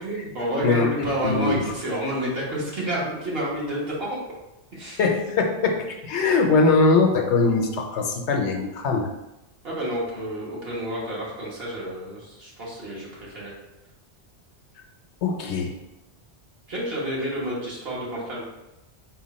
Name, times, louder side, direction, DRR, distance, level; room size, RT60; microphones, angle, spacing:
voice 1, 0.0-4.2 4.7-5.0 9.6-13.5 16.7-18.4, equal, 55° right, -5 dB, 1.4 m, -29 dB
voice 2, 0.6-1.6 5.0-9.1 15.2-15.8, left 3 dB, 75° left, 2 dB, 0.9 m, -22 dB
4.6 x 2.2 x 4.1 m, 0.96 s
omnidirectional pair, 1.2 m